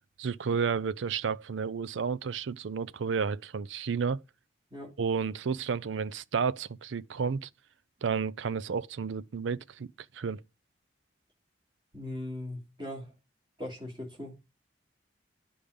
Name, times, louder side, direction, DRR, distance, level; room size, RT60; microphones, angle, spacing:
voice 1, 0.2-4.2 5.0-7.5 8.0-10.4, right 6 dB, 75° right, 0.5 m, -31 dB
voice 2, 11.9-13.1 13.6-14.4, left 1 dB, 25° right, 3.1 m, -39 dB
10.0 x 5.1 x 5.2 m
head